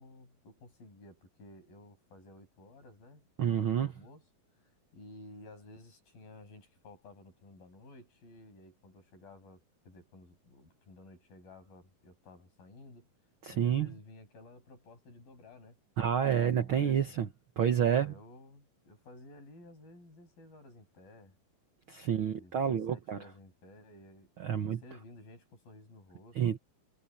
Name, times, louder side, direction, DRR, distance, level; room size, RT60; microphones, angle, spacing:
voice 1, 0.0-4.2 4.9-13.1 13.5-15.8 16.4-17.2 17.9-21.4 22.1-26.4, left 2 dB, 80° left, 8.4 m, -54 dB
voice 2, 3.4-3.9 13.4-13.9 16.0-17.3 17.6-18.1 21.9-23.2 24.4-24.8 26.4-26.6, right 9 dB, 85° right, 1.1 m, -29 dB
omnidirectional pair, 4.1 m